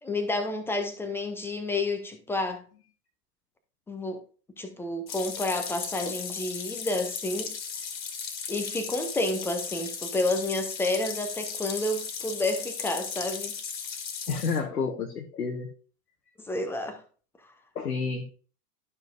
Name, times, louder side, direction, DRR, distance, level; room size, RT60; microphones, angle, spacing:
voice 1, 0.0-2.6 3.9-4.2 4.6-7.5 8.5-13.5 16.4-17.0 17.4-17.5, left 2 dB, 5° left, 0.4 m, -30 dB
sound 1, 5.1-14.6, left 6 dB, 60° left, 1.9 m, -36 dB
voice 2, 14.3-15.7 17.7-18.2, left 5 dB, 80° left, 1.2 m, -30 dB
11.5 x 5.6 x 2.5 m
figure-of-eight pair, 105°, 47 cm